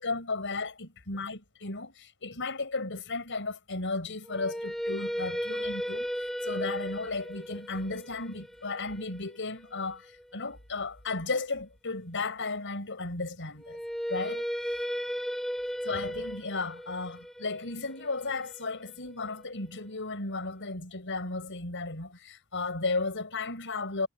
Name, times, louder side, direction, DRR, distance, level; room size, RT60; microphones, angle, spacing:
voice 1, 0.0-13.8 14.1-14.5 15.8-24.1, left 3 dB, 60° left, 6.8 m, -34 dB
sound 1, 4.2-10.4 13.6-19.7, equal, ahead, 6.0 m, -36 dB
head